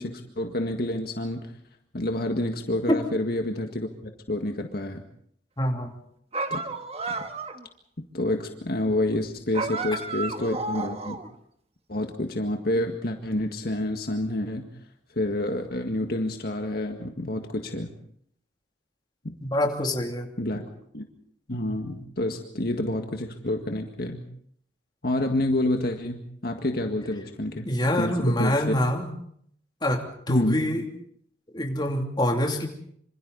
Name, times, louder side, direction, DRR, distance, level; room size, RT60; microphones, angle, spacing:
voice 1, 0.0-1.5 1.9-3.9 4.3-5.0 6.5-6.6 7.1-7.2 8.1-11.2 11.9-14.7 15.2-17.9 19.2-19.4 20.4-20.7 20.9-21.0 21.5-24.2 25.0-27.7 28.0-28.7 30.3-30.6, left 1 dB, 55° left, 4 dB, 1.9 m, -28 dB
voice 2, 5.6-5.9 19.4-20.3 27.6-29.1 29.8-30.8 31.5-32.7, left 1 dB, 25° left, 3 dB, 2.9 m, -25 dB
sound 1, 6.3-7.7 9.5-11.3, right 3 dB, 35° right, 1.5 m, -32 dB
26.5 x 26.5 x 4.1 m, 0.65 s
head